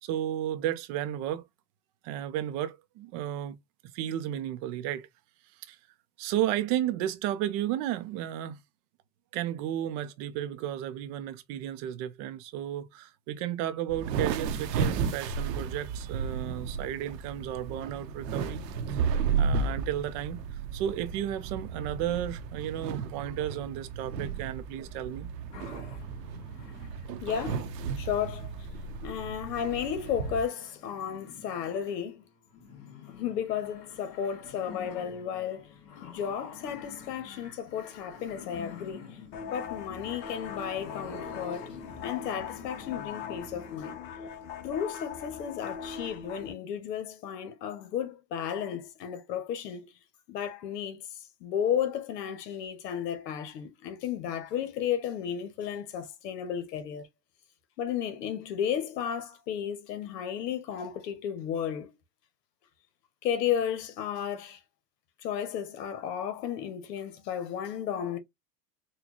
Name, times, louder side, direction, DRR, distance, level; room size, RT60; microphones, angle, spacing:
voice 1, 0.0-1.4 2.0-3.6 3.9-5.1 5.6-5.8 6.2-8.6 9.3-18.6 18.9-20.4 20.7-25.3, right 11 dB, 35° right, 0.5 m, -33 dB
sound 1, 13.9-30.4, right 5 dB, 85° right, 0.8 m, -33 dB
sound 2, 25.5-43.8, left 6 dB, 55° left, 1.9 m, -48 dB
voice 2, 27.2-27.7 28.0-28.5 29.0-32.2 33.1-35.7 36.0-39.0 39.5-41.7 42.0-44.0 44.6-49.9 50.3-57.1 57.8-62.0 63.2-64.6 65.2-68.2, left 8 dB, 80° left, 1.0 m, -33 dB
sound 3, 39.3-46.5, left 7 dB, 25° left, 0.3 m, -41 dB
4.0 x 2.2 x 2.9 m
supercardioid pair, 130°, 48 cm